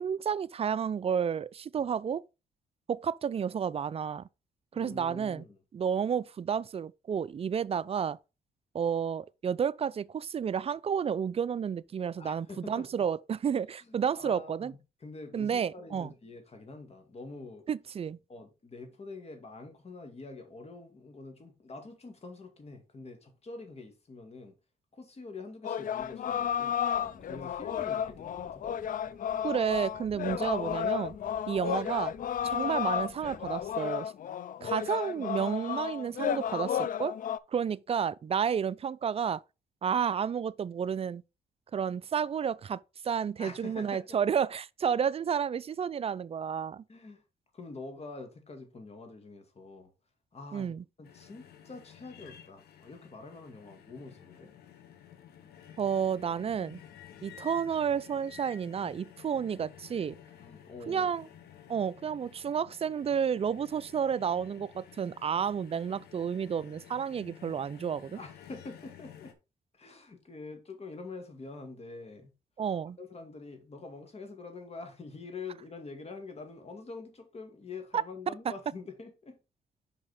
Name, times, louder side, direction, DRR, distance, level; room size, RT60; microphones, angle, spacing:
voice 1, 0.0-2.2 2.9-4.2 4.7-5.4 5.7-8.2 8.7-14.7 15.3-16.1 17.7-18.2 29.4-31.1 31.5-32.1 32.4-34.1 34.6-37.1 37.5-39.4 39.8-41.2 41.7-46.8 50.5-50.8 55.8-56.8 57.2-60.1 60.9-61.3 61.7-68.2 72.6-73.0, right 7 dB, 40° right, 0.4 m, -31 dB
voice 2, 4.7-5.6 12.2-13.1 13.8-17.6 18.3-24.6 24.9-26.8 27.2-28.6 34.6-34.9 43.4-44.3 46.9-47.2 47.5-49.9 50.3-50.7 51.0-54.5 60.4-61.1 68.1-69.3 69.7-72.3 73.0-79.4, left 3 dB, 40° left, 2.2 m, -46 dB
sound 1, 25.6-37.4, left 9 dB, 55° left, 0.5 m, -33 dB
sound 2, 26.0-33.8, right 2 dB, 15° right, 2.7 m, -56 dB
sound 3, 51.0-69.3, left 9 dB, 80° left, 1.1 m, -53 dB
5.7 x 5.4 x 4.1 m
cardioid pair, 70°, 16 cm